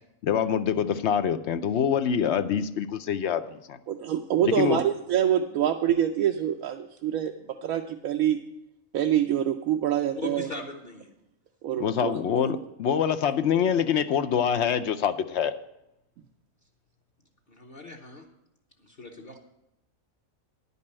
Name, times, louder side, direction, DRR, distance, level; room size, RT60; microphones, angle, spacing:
voice 1, 0.2-3.8 4.4-4.8 11.8-15.5, left 8 dB, 60° left, 10 dB, 0.8 m, -25 dB
voice 2, 3.9-8.4 8.9-10.5 11.6-12.2, right 10 dB, 85° right, 4 dB, 1.1 m, -26 dB
voice 3, 10.1-11.1 17.5-18.3 18.8-19.4, left 3 dB, 40° left, 3 dB, 1.2 m, -39 dB
10.5 x 5.4 x 8.5 m, 0.86 s
omnidirectional pair, 1.4 m